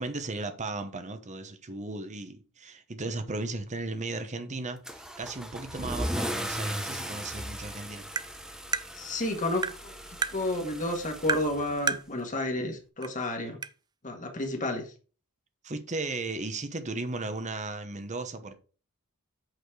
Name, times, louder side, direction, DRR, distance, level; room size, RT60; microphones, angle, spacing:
voice 1, 0.0-8.1 13.4-13.6 15.6-18.5, right 3 dB, 35° right, 1.0 m, -36 dB
Car / Engine starting / Accelerating revving vroom, 4.8-12.2, equal, 5° right, 0.8 m, -37 dB
Tap, 8.2-8.3 8.7-8.9 9.6-9.8 10.2-10.4 11.3-11.5 11.9-12.1 13.0-13.1 13.6-13.7, right 5 dB, 20° right, 0.3 m, -29 dB
voice 2, 8.9-9.9 10.3-13.6 14.0-14.9, left 1 dB, 35° left, 1.7 m, -31 dB
8.1 x 4.3 x 4.8 m
head